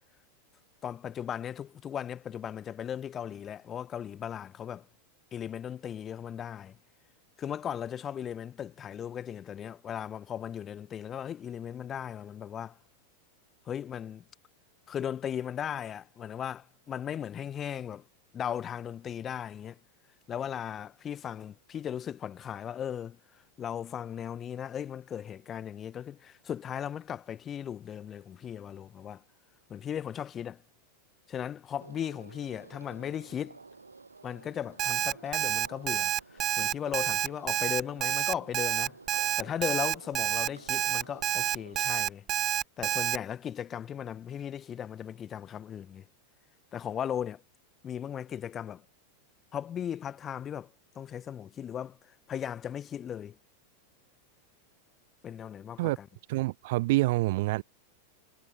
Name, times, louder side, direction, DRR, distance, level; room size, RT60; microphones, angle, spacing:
voice 1, 0.8-4.9 5.3-6.8 7.4-12.8 13.7-14.2 14.9-18.0 18.3-19.8 20.3-23.2 23.6-29.2 29.7-30.6 31.3-33.6 34.2-39.0 39.4-42.2 42.8-46.0 46.7-47.4 47.8-48.8 49.5-50.7 50.9-52.0 52.3-53.4 55.2-55.9, left 9 dB, 25° left, 1.1 m, -37 dB
sound 1, 31.8-41.8, right 4 dB, 80° right, 7.8 m, -51 dB
Alarm, 34.8-43.2, right 12 dB, 30° right, 1.2 m, -28 dB
voice 2, 56.3-57.6, right 20 dB, 50° right, 0.7 m, -27 dB
figure-of-eight pair, 90°, 0 cm